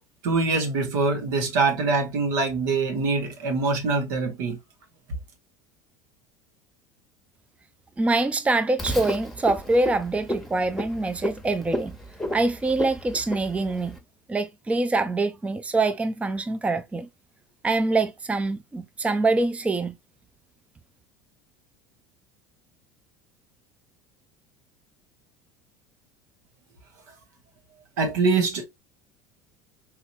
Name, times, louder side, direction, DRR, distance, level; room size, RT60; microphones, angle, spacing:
voice 1, 0.2-4.6 28.0-28.6, right 4 dB, 75° right, 1.3 m, -24 dB
voice 2, 8.0-12.0 12.3-14.0 14.3-17.1 17.6-19.9, right 2 dB, 15° right, 0.5 m, -25 dB
Frog, 8.8-14.0, equal, 5° left, 1.2 m, -33 dB
3.7 x 2.9 x 2.6 m
hypercardioid pair, 80°, 10 cm